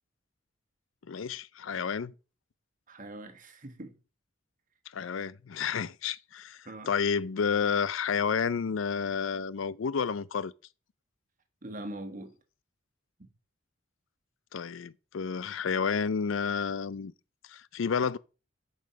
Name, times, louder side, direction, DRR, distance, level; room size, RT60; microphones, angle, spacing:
voice 1, 1.1-2.1 4.9-10.5 14.5-17.1 17.5-18.2, left 6 dB, 70° left, 0.5 m, -30 dB
voice 2, 2.9-3.9 6.6-6.9 11.6-12.3 13.2-13.3, right 1 dB, 40° right, 1.4 m, -42 dB
7.3 x 5.5 x 5.6 m
head